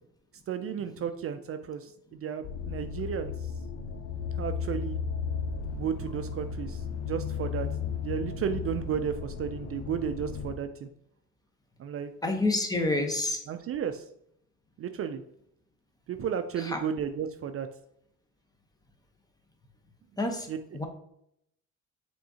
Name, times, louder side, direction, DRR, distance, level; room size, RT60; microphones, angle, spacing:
voice 1, 0.5-3.5 4.4-5.0 5.7-10.9 11.8-12.1 13.5-14.0 14.8-15.2 16.1-17.7 20.5-20.6, right 8 dB, 50° right, 8 dB, 0.4 m, -33 dB
sound 1, 2.4-10.5, left 6 dB, 60° left, 0.5 m, -35 dB
voice 2, 12.2-13.4 16.6-16.8 20.2-20.5 20.7-20.9, left 2 dB, 10° left, 3 dB, 0.8 m, -28 dB
5.4 x 3.5 x 2.8 m, 0.73 s
cardioid pair, 90°, 30 cm